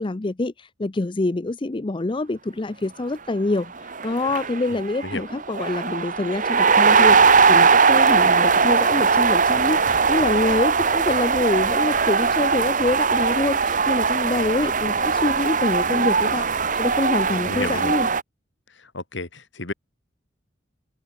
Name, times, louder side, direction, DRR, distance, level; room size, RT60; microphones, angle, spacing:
voice 1, 0.0-18.1, left 2 dB, 25° left, 0.5 m, -26 dB
sound 1, 3.6-3.7 3.9-18.2, right 5 dB, 40° right, 1.3 m, -20 dB
voice 2, 17.4-17.9 18.9-19.7, left 2 dB, 65° left, 3.5 m, -31 dB
head